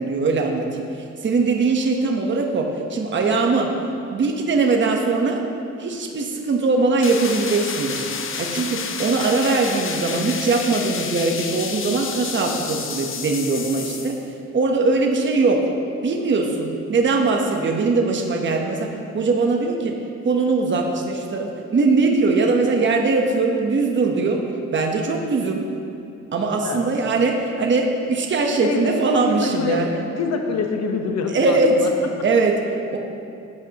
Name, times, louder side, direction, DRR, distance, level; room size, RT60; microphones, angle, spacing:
voice 1, 0.0-3.7 4.1-5.4 5.8-8.1 8.4-14.1 14.5-15.7 16.0-19.9 20.2-24.4 24.7-25.7 26.3-29.9 31.3-31.9 32.2-33.0, right 3 dB, 40° right, 2 dB, 1.1 m, -21 dB
sound 1, 7.0-14.2, left 6 dB, 45° left, 0.8 m, -30 dB
voice 2, 28.6-28.9 29.2-29.8 30.2-31.9, left 4 dB, 60° left, 3 dB, 1.1 m, -25 dB
13.5 x 8.6 x 3.0 m, 2.6 s
cardioid pair, 90°, 30 cm